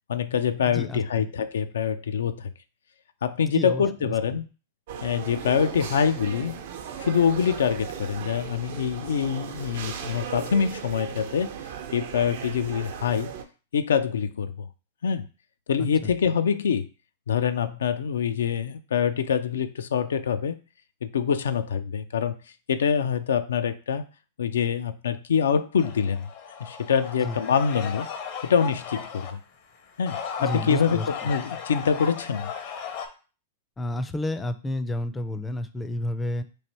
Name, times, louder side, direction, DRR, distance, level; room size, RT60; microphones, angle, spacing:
voice 1, 0.1-2.5 3.2-4.5 5.0-6.5 7.0-11.5 11.9-13.3 13.7-14.5 15.0-15.2 15.7-16.9 17.3-20.6 21.0-22.3 22.7-24.0 24.4-26.3 26.6-28.1 28.4-29.4 30.0-32.5, left 7 dB, 80° left, 10 dB, 0.3 m, -25 dB
voice 2, 0.6-1.3 3.4-4.1 15.8-16.1 27.2-27.4 30.4-31.0 33.8-36.4, left 1 dB, 15° left, 9 dB, 0.4 m, -31 dB
sound 1, 4.9-13.4, right 8 dB, 65° right, 0.6 m, -37 dB
sound 2, 25.8-29.3 29.9-33.1, left 7 dB, 55° left, 0.7 m, -36 dB
3.2 x 2.6 x 4.1 m, 0.34 s
hypercardioid pair, 110°, 0 cm